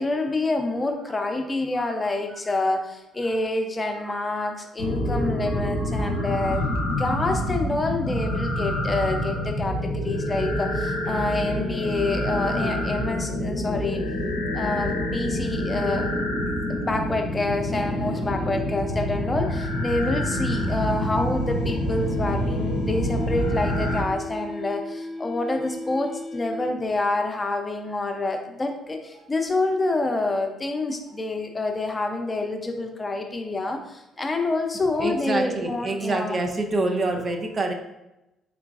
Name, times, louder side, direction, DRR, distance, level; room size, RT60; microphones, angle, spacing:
voice 1, 0.0-6.6 7.0-14.0 14.5-16.1 16.7-36.4, left 2 dB, 30° left, 4 dB, 0.6 m, -27 dB
voice 2, 3.8-4.2 5.2-6.6 29.1-29.2 35.0-37.7, right 2 dB, 40° right, 4 dB, 0.5 m, -29 dB
sound 1, 4.8-24.0, left 1 dB, 80° left, 0.5 m, -27 dB
sound 2, 11.0-27.0, left 1 dB, 20° right, 1.0 m, -38 dB
3.7 x 3.4 x 2.4 m, 0.94 s
hypercardioid pair, 50°, 0 cm